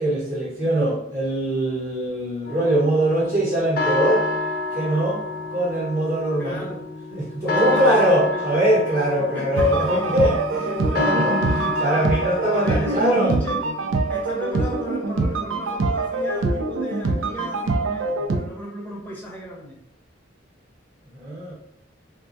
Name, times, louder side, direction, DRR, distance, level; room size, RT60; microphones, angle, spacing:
voice 1, 0.0-4.3 4.7-5.2 5.5-6.7 7.1-13.3 21.1-21.5, right 1 dB, 45° right, -8 dB, 1.3 m, -22 dB
sound 1, 2.5-13.6, left 3 dB, 45° left, 0.3 m, -29 dB
voice 2, 6.4-6.8 7.4-8.6 9.3-9.9 12.5-13.6 14.1-19.8, equal, 10° left, -5 dB, 0.8 m, -34 dB
sound 2, 9.6-18.4, right 3 dB, 80° right, 0.4 m, -24 dB
3.3 x 2.1 x 2.6 m, 0.74 s
head